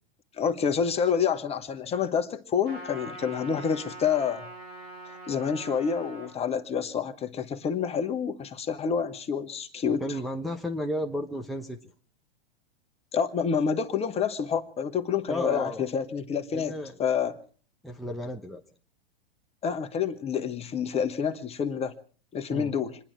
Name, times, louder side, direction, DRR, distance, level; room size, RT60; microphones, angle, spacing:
voice 1, 0.4-4.5 5.3-10.0 13.1-16.7 17.0-17.4 19.6-21.9 22.3-23.0, left 7 dB, 20° left, 9 dB, 1.2 m, -28 dB
Trumpet, 2.6-6.4, right 1 dB, 85° right, 7.2 m, -43 dB
voice 2, 10.0-11.8 15.3-15.8 16.5-17.0 17.8-18.6 22.5-22.7, left 1 dB, ahead, 1 dB, 1.0 m, -33 dB
27.5 x 11.0 x 4.5 m, 0.42 s
hypercardioid pair, 110°, 30 cm